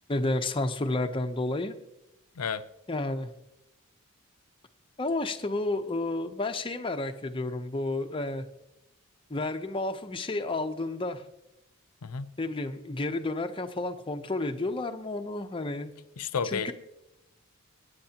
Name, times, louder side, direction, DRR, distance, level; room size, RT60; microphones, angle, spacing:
voice 1, 0.1-1.7 2.9-3.3 5.0-8.4 9.3-11.2 12.4-15.9 16.5-16.7, left 2 dB, 25° left, 6 dB, 0.7 m, -31 dB
voice 2, 16.2-16.7, left 6 dB, 85° left, 11 dB, 0.6 m, -31 dB
22.5 x 9.6 x 2.9 m, 0.91 s
head